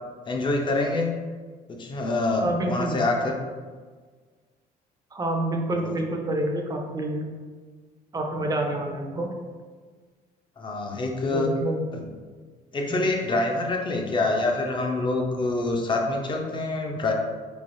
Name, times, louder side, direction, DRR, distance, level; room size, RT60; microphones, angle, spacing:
voice 1, 0.3-1.2 1.7-3.4 5.7-5.9 10.6-11.5 11.9-12.1 12.7-17.1, left 2 dB, 30° left, 1 dB, 0.6 m, -26 dB
voice 2, 2.4-3.0 5.1-7.2 8.1-9.3 11.3-11.8 12.9-13.0, right 1 dB, 25° right, 2 dB, 0.5 m, -28 dB
3.9 x 3.2 x 2.6 m, 1.5 s
cardioid pair, 110°, 17 cm